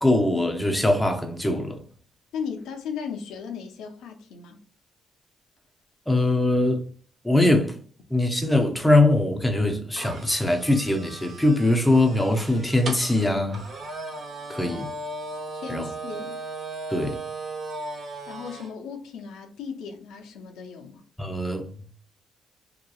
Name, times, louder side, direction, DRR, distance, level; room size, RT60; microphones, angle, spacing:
voice 1, 0.0-1.8 6.1-6.8 7.2-7.8 8.1-13.6 14.5-14.9 15.7-15.9 16.9-17.2 21.2-21.7, left 2 dB, 5° left, 0.5 m, -22 dB
voice 2, 2.3-4.6 14.6-14.8 15.5-16.4 18.3-21.0, left 6 dB, 85° left, 0.5 m, -36 dB
sound 1, 9.9-18.7, right 2 dB, 50° right, 0.8 m, -37 dB
2.8 x 2.2 x 2.3 m
cardioid pair, 90°, 0 cm